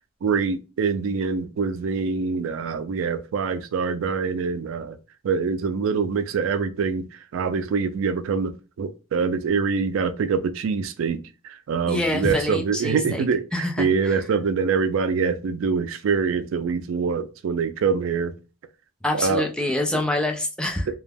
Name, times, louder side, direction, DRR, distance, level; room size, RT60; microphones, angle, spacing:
voice 1, 0.2-5.0 5.2-7.0 7.3-8.5 8.8-11.2 11.4-18.3 19.1-19.4, right 5 dB, 85° right, 0.3 m, -24 dB
voice 2, 11.9-13.2 13.5-14.2 19.0-20.9, left 1 dB, 5° left, 0.3 m, -26 dB
2.2 x 2.1 x 3.3 m
head